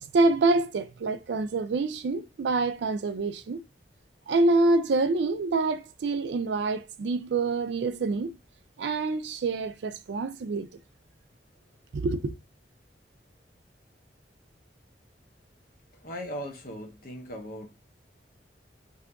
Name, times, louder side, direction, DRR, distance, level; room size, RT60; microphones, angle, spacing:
voice 1, 0.1-3.6 4.3-8.3 8.8-10.7 11.9-12.3, right 3 dB, 75° right, 0.4 m, -26 dB
voice 2, 15.9-17.7, equal, 50° left, 0.7 m, -38 dB
2.7 x 2.4 x 3.4 m
head